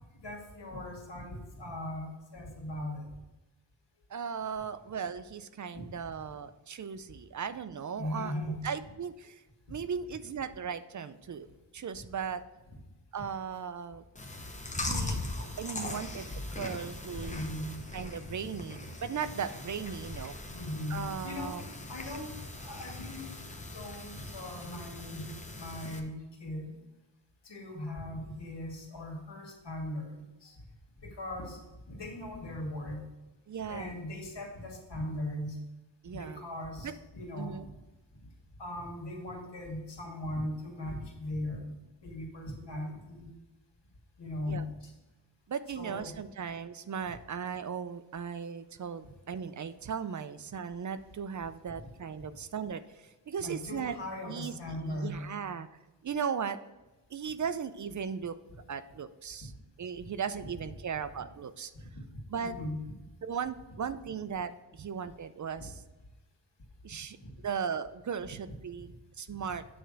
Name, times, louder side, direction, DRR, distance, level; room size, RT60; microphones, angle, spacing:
voice 1, 0.2-3.1 5.7-5.8 8.0-8.7 14.8-14.9 15.8-16.0 16.3-16.6 17.2-17.8 20.5-21.6 21.9-23.4 23.7-26.8 27.4-30.5 31.0-31.6 31.9-33.0 33.7-35.6 36.1-37.6 38.6-41.7 42.0-43.3 44.2-44.9 45.7-46.2 53.4-55.4 58.5-58.6 62.4-62.9 65.6-65.7 67.2-67.3, left 1 dB, 75° left, -1 dB, 2.2 m, -39 dB
voice 2, 4.1-8.3 8.6-11.5 11.7-12.4 13.1-14.0 14.8-17.4 17.9-20.4 20.9-21.6 33.5-34.0 36.0-36.4 36.8-36.9 37.4-37.7 44.5-44.6 45.5-54.0 54.3-55.7 56.0-56.6 57.1-58.4 58.7-59.5 59.8-61.7 62.3-62.6 63.2-65.8 66.8-67.2 67.4-69.7, right 7 dB, 45° right, 13 dB, 0.4 m, -37 dB
Chewing mastication, 14.2-26.0, left 2 dB, 15° left, 0.9 m, -40 dB
8.7 x 3.4 x 6.3 m, 1.1 s
wide cardioid pair, 115°, 42 cm